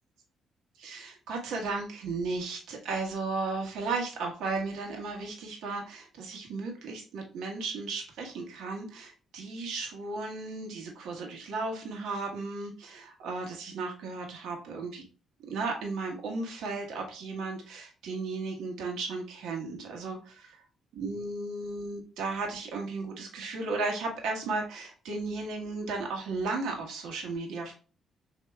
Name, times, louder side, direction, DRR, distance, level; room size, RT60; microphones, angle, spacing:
voice 1, 0.8-15.0 15.5-20.5 20.9-27.7, right 3 dB, 85° right, 1 dB, 1.3 m, -35 dB
6.6 x 2.8 x 2.2 m, 0.36 s
cardioid pair, 90°, 0 cm